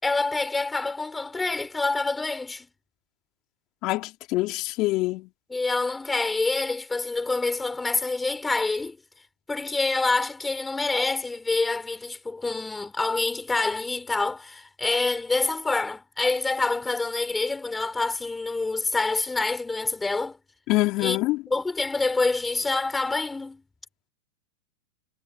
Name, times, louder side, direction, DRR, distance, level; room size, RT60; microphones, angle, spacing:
voice 1, 0.0-2.7 5.5-9.0 9.5-20.4 21.0-21.2 21.5-23.6, left 3 dB, 10° left, 5.9 m, -26 dB
voice 2, 3.8-5.3 20.7-21.4, left 20 dB, 45° left, 3.6 m, -25 dB
hypercardioid pair, 105°, 0 cm